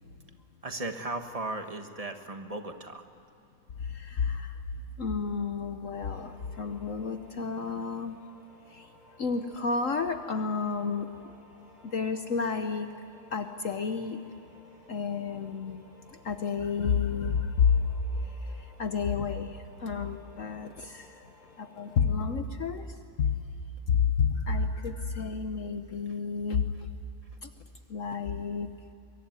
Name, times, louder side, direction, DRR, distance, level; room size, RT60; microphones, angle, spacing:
voice 1, 0.6-3.1, right 2 dB, 25° right, 6 dB, 1.5 m, -36 dB
voice 2, 3.8-4.5 5.0-8.2 8.7-8.9 9.2-11.3 11.8-12.9 13.3-14.2 14.9-15.8 16.1-17.9 18.2-21.2 21.6-22.9 23.2-23.3 23.9-26.9 27.4-27.5 27.9-28.7, left 5 dB, 55° left, 8 dB, 1.2 m, -30 dB
sound 1, 5.9-22.0, left 1 dB, 80° left, 8.6 m, -57 dB
24.0 x 23.0 x 9.5 m, 2.7 s
omnidirectional pair, 1.7 m